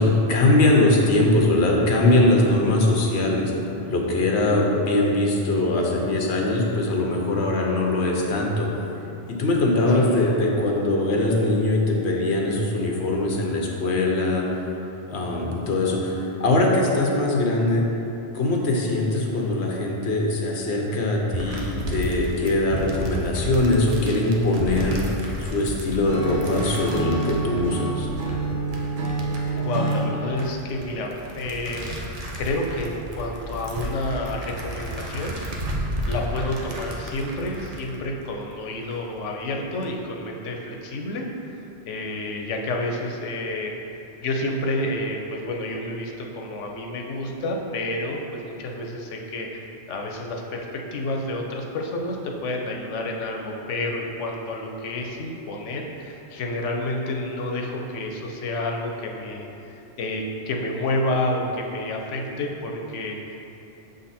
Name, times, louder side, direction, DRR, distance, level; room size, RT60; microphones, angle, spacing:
voice 1, 0.0-3.5 3.9-8.7 9.3-14.5 15.1-17.9 18.3-25.0 25.4-28.1, left 2 dB, 65° left, -1 dB, 1.1 m, -21 dB
voice 2, 9.9-10.3 29.6-32.0 32.3-35.4 35.7-63.4, left 1 dB, 90° left, 1 dB, 1.0 m, -30 dB
sound 1, 21.3-38.9 39.4-39.8, right 1 dB, 40° right, 0.6 m, -33 dB
Acoustic guitar / Strum, 26.1-30.2, right 3 dB, 75° right, 1.2 m, -27 dB
6.5 x 3.9 x 4.2 m, 3.0 s
omnidirectional pair, 1.2 m